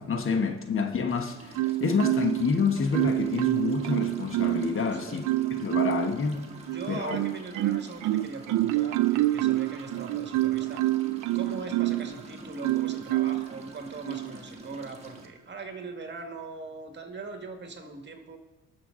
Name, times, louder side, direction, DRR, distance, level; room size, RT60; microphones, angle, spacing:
voice 1, 0.0-5.2 5.6-6.5 6.9-7.2, left 5 dB, 45° left, 1.1 m, -28 dB
sound 1, 1.1-15.3, right 3 dB, 20° right, 1.7 m, -46 dB
Marimba xylophone, 1.5-2.5 2.9-4.8 5.2-6.1 6.7-12.1 12.6-13.5 14.0-14.3, right 17 dB, 80° right, 0.5 m, -27 dB
voice 2, 4.9-5.2 6.5-10.8 11.3-18.4, right 4 dB, 35° right, 1.9 m, -41 dB
19.5 x 6.8 x 3.8 m
cardioid pair, 90°, 30 cm